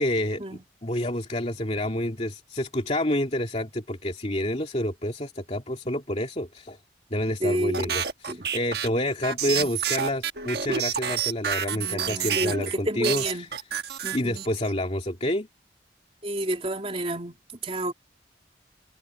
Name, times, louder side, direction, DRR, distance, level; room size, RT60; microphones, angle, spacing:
voice 1, 0.0-6.8 7.1-13.5 14.1-15.5, left 1 dB, 35° left, 2.7 m, -28 dB
voice 2, 7.4-7.9 8.3-8.4 9.5-9.7 11.7-13.5 14.0-14.5 16.2-17.4 17.6-17.9, right 1 dB, 35° right, 3.6 m, -30 dB
sound 1, 7.7-12.7 13.0-14.7, right 8 dB, 60° right, 1.3 m, -29 dB
head